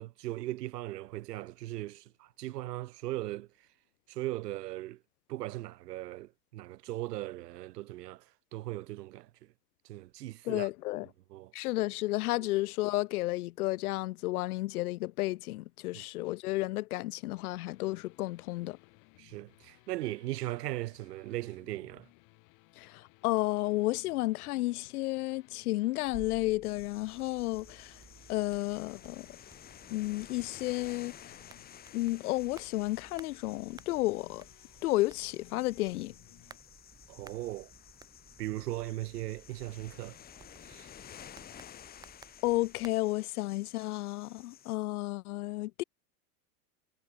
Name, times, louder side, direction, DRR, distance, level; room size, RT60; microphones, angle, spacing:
voice 1, 0.0-3.5 4.1-5.0 5.3-8.2 8.5-9.3 9.9-10.7 11.3-11.5 12.4-12.5 15.9-16.0 19.2-22.1 37.1-37.7 38.4-40.2 40.7-40.9, right 16 dB, 75° right, 2.0 m, -38 dB
voice 2, 10.4-11.1 11.5-18.8 22.8-28.0 28.3-29.3 29.9-31.3 31.9-34.4 34.8-36.1 42.4-45.8, left 19 dB, 65° left, 1.0 m, -32 dB
sound 1, 17.4-36.6, left 29 dB, 40° left, 4.3 m, -62 dB
sound 2, 26.0-42.9, right 5 dB, 10° right, 1.0 m, -57 dB
sound 3, 26.6-44.8, left 10 dB, 20° left, 2.4 m, -53 dB
supercardioid pair, 165°, 49 cm